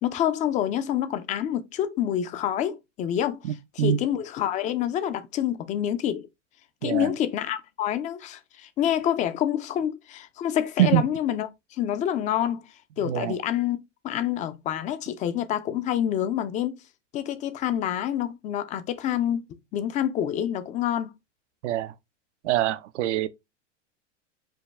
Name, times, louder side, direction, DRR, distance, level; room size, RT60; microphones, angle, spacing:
voice 1, 0.0-3.4 3.8-6.3 6.8-11.5 11.8-12.7 13.0-13.8 14.0-16.8 17.1-19.5 19.7-21.1, left 10 dB, 20° left, 0.3 m, -27 dB
voice 2, 3.4-4.0 6.8-7.1 10.8-11.0 13.0-13.4 21.6-21.9 22.4-23.3, right 12 dB, 70° right, 0.5 m, -24 dB
5.2 x 2.3 x 3.2 m
hypercardioid pair, 100°, 36 cm